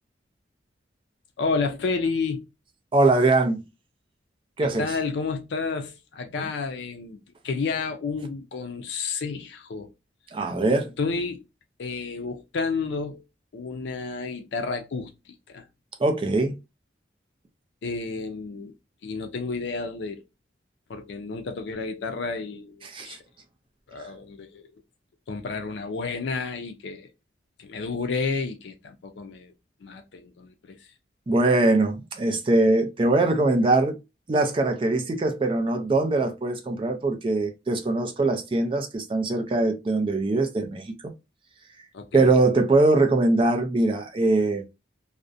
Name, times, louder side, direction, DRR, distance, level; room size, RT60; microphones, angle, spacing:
voice 1, 1.4-2.4 4.6-9.9 11.0-11.4 11.8-13.2 13.5-15.6 17.8-18.7 19.0-20.2 20.9-23.2 23.9-24.7 25.3-27.1 27.6-29.5 29.8-30.9 41.9-42.2, left 4 dB, 75° left, 0.4 m, -31 dB
voice 2, 2.9-3.6 4.6-4.9 6.4-6.5 10.3-10.9 16.0-16.5 22.9-23.2 31.3-34.0 34.3-41.1 42.1-44.6, right 2 dB, 30° right, 0.4 m, -22 dB
2.4 x 2.0 x 2.5 m
head